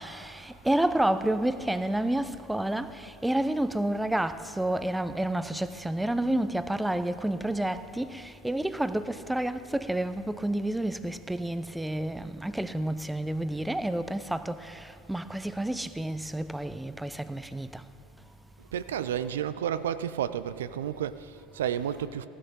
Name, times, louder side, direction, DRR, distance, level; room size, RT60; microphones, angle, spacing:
voice 1, 0.0-17.8, right 1 dB, 5° right, 0.5 m, -30 dB
voice 2, 18.6-22.3, right 9 dB, 70° right, 0.4 m, -31 dB
15.5 x 11.0 x 5.3 m
figure-of-eight pair, 75°, 0 cm